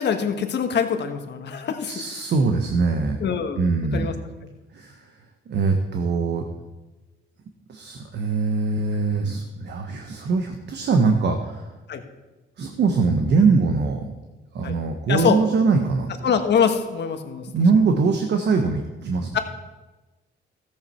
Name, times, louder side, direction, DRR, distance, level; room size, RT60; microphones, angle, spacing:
voice 1, 0.0-1.9 3.2-3.6 3.9-4.1 11.9-12.0 14.6-14.7 15.1-15.4 16.2-17.4 19.3-19.4, left 7 dB, 60° left, 6 dB, 1.4 m, -23 dB
voice 2, 1.5-3.2 3.6-4.1 4.7-5.1 5.5-6.5 7.7-11.7 12.6-14.1 14.5-16.1 17.5-19.4, right 4 dB, 60° right, 5 dB, 1.2 m, -22 dB
14.0 x 8.7 x 4.4 m, 1.1 s
cardioid pair, 90°, 20 cm